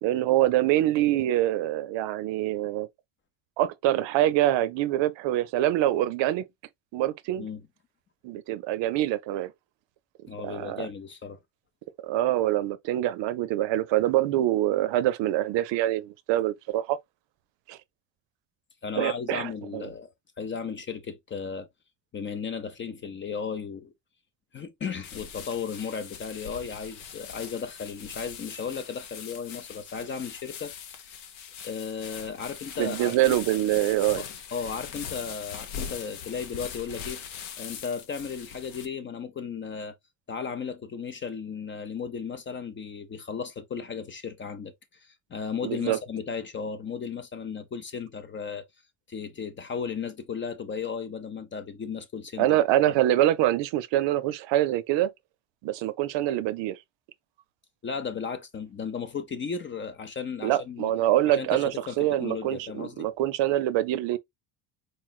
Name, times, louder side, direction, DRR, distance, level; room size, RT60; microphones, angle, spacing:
voice 1, 0.0-2.9 3.6-6.4 6.9-7.5 8.2-9.5 10.4-10.9 12.0-17.0 17.7-17.8 19.0-19.9 32.8-34.2 45.6-46.0 52.4-55.1 55.6-56.8 60.4-64.2, right 14 dB, 75° right, 0.6 m, -25 dB
voice 2, 10.3-11.4 18.8-21.7 22.1-23.9 24.5-30.7 31.0-31.2 31.6-33.4 34.1-40.0 40.3-44.7 45.0-48.6 49.1-52.6 57.8-60.9 61.3-63.1, left 6 dB, 25° left, 0.5 m, -35 dB
sound 1, 25.0-38.9, left 8 dB, 85° left, 0.9 m, -41 dB
4.3 x 3.1 x 2.2 m
cardioid pair, 150°, 45 cm